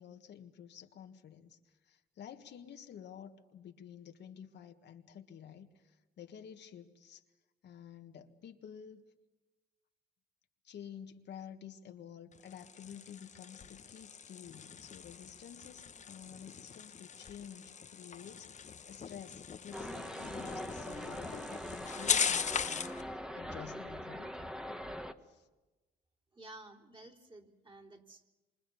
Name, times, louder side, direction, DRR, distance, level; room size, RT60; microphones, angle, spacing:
voice 1, 0.0-7.2 7.6-9.0 10.6-24.3 25.3-25.5, left 8 dB, 65° left, 5 dB, 1.7 m, -51 dB
sound 1, 12.3-23.0, left 7 dB, 40° left, 1.0 m, -39 dB
sound 2, 19.7-25.1, equal, 5° right, 1.5 m, -42 dB
voice 2, 26.3-28.3, right 2 dB, 25° right, 0 dB, 3.7 m, -53 dB
26.5 x 25.0 x 7.2 m, 1.2 s
cardioid pair, 85°, 19 cm